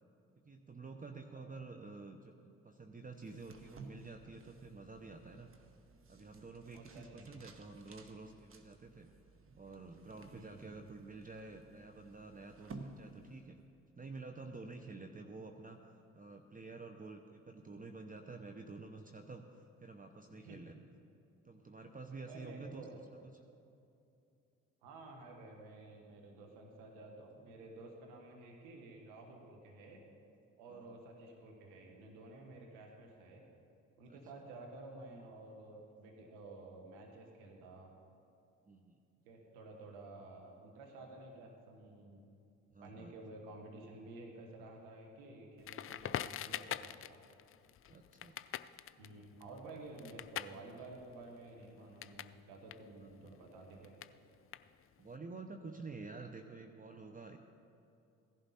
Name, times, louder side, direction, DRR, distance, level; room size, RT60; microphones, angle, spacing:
voice 1, 0.5-5.5 6.1-9.1 9.6-13.6 14.0-15.8 16.1-20.8 21.4-23.2 30.7-30.8 34.1-34.2 38.7-39.0 42.7-43.1 47.9-48.4 53.0-53.3 55.0-57.4, right 3 dB, 25° right, 5 dB, 0.8 m, -50 dB
sound 1, 3.2-13.7, right 3 dB, 40° right, 1.1 m, -56 dB
voice 2, 6.7-7.4 10.3-10.6 20.4-20.7 22.2-23.0 24.8-30.0 30.6-33.4 34.0-37.9 39.2-42.2 42.8-47.2 49.0-53.9, right 2 dB, 85° right, 1 dB, 1.5 m, -52 dB
Crackle, 45.6-52.4 52.6-55.1, left 11 dB, 40° left, 0.4 m, -44 dB
16.0 x 11.0 x 4.2 m, 2.6 s
hypercardioid pair, 55°, 33 cm